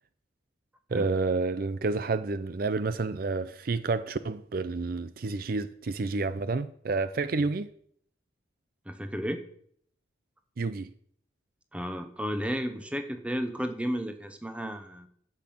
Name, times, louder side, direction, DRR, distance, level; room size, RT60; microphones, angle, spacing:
voice 1, 0.9-7.7 10.6-10.9, right 3 dB, 50° right, 0.4 m, -29 dB
voice 2, 8.9-9.4 11.7-15.1, equal, 5° right, 0.9 m, -33 dB
10.5 x 6.0 x 7.7 m
head